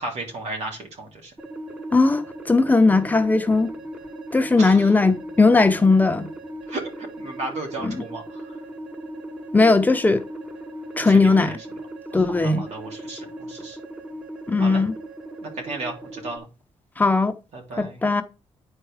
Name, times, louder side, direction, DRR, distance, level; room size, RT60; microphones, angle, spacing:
voice 1, 0.0-1.3 4.6-4.9 6.7-8.6 11.0-11.6 12.1-13.8 14.6-14.8 15.4-16.5 17.5-18.0, right 2 dB, 85° right, 3.1 m, -34 dB
sound 1, 1.4-16.4, right 1 dB, 10° right, 0.9 m, -38 dB
voice 2, 1.9-3.7 4.3-6.3 7.8-8.0 9.5-10.2 11.0-11.6 12.1-12.6 14.5-14.9 17.0-17.3 17.8-18.2, left 3 dB, 15° left, 0.7 m, -18 dB
9.7 x 4.5 x 4.8 m
wide cardioid pair, 140°, 11 cm